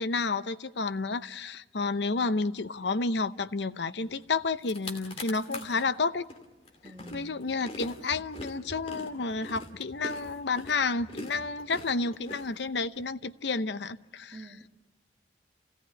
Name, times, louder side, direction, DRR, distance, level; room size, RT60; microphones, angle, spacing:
voice 1, 0.0-6.2 7.1-14.4, left 4 dB, 80° left, 0.8 m, -30 dB
sound 1, 4.2-4.3 4.6-5.8 6.3-13.0, left 2 dB, 35° left, 2.6 m, -43 dB
voice 2, 5.5-5.9 6.8-7.3 14.3-14.7, right 1 dB, 30° right, 1.5 m, -46 dB
28.5 x 17.0 x 9.8 m
head